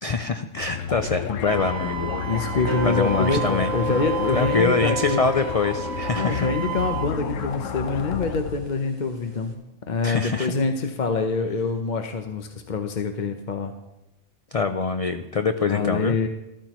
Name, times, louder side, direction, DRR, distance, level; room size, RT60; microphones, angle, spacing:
voice 1, 0.0-2.3 2.8-3.7 4.3-6.5 10.0-10.5 14.5-16.2, left 4 dB, 65° left, 8 dB, 0.3 m, -24 dB
sound 1, 0.6-8.8, left 7 dB, 80° left, 1.1 m, -32 dB
Wind instrument woodwind instrument, 1.5-7.1, right 12 dB, 90° right, 1.2 m, -33 dB
voice 2, 1.8-5.2 6.2-9.6 9.9-13.7 15.7-16.3, left 4 dB, 45° left, 6 dB, 0.8 m, -26 dB
sound 2, 2.6-9.5, equal, 20° right, 1.8 m, -33 dB
13.5 x 13.5 x 3.0 m, 0.95 s
omnidirectional pair, 1.3 m